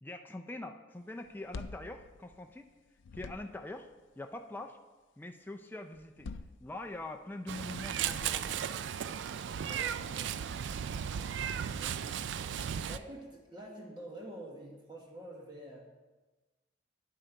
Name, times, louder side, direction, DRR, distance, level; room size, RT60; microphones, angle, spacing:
voice 1, 0.0-2.7 3.1-3.9 4.2-4.8 5.2-6.3 6.6-8.8 11.1-11.3, left 2 dB, 10° left, 5 dB, 0.4 m, -43 dB
sound 1, 1.2-2.7 3.0-3.8 5.9-7.2 7.9-8.7, left 4 dB, 80° left, 0.4 m, -47 dB
Meow, 7.5-13.0, right 8 dB, 70° right, 0.3 m, -36 dB
voice 2, 9.7-10.3 11.8-12.3 12.9-15.8, right 1 dB, 25° right, -1 dB, 1.3 m, -47 dB
9.5 x 7.6 x 4.5 m, 1.2 s
head